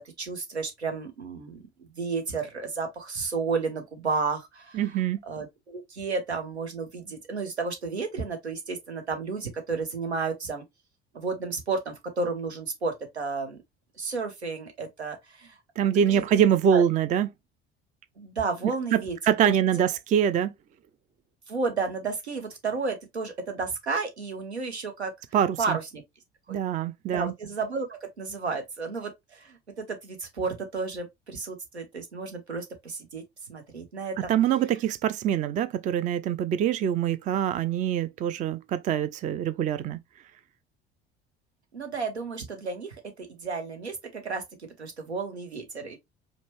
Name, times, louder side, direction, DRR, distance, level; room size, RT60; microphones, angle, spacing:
voice 1, 0.0-4.8 5.2-10.6 11.1-13.6 14.0-15.6 16.1-16.3 16.7-16.8 18.2-19.2 19.5-19.6 21.5-25.1 25.6-26.0 26.5-26.6 27.1-33.2 33.5-34.3 41.7-46.0, right 4 dB, 85° right, 0.9 m, -32 dB
voice 2, 4.7-5.2 15.8-17.3 18.9-20.5 25.3-25.8 26.5-27.3 34.3-40.0, right 9 dB, 25° right, 0.4 m, -24 dB
5.1 x 2.0 x 3.1 m
figure-of-eight pair, 60°, 32 cm